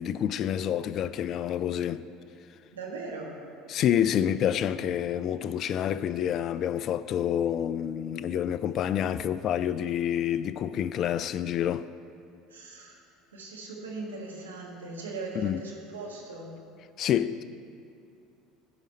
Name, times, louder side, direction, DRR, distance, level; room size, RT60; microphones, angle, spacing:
voice 1, 0.0-2.1 3.7-11.9 15.4-15.6 17.0-17.4, left 10 dB, 50° left, 0.3 m, -28 dB
voice 2, 2.7-3.4 12.5-13.0 13.3-16.5, right 3 dB, 90° right, 1.6 m, -39 dB
15.0 x 5.0 x 4.2 m
hypercardioid pair, 70°, 0 cm